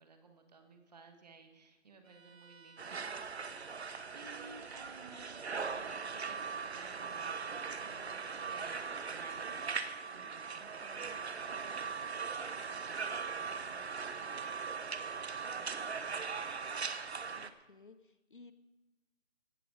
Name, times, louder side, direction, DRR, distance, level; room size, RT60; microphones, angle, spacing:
voice 1, 0.0-3.1 4.1-10.9 11.4-16.6, right 4 dB, 30° right, 5 dB, 1.7 m, -57 dB
Bowed string instrument, 2.0-9.0, right 6 dB, 80° right, 1.5 m, -60 dB
sound 1, 2.8-17.5, right 5 dB, 55° right, 1.1 m, -40 dB
voice 2, 10.6-11.2 17.4-18.5, left 3 dB, 40° left, 12 dB, 0.8 m, -58 dB
16.5 x 13.0 x 5.0 m, 1.1 s
figure-of-eight pair, 165°, 40 cm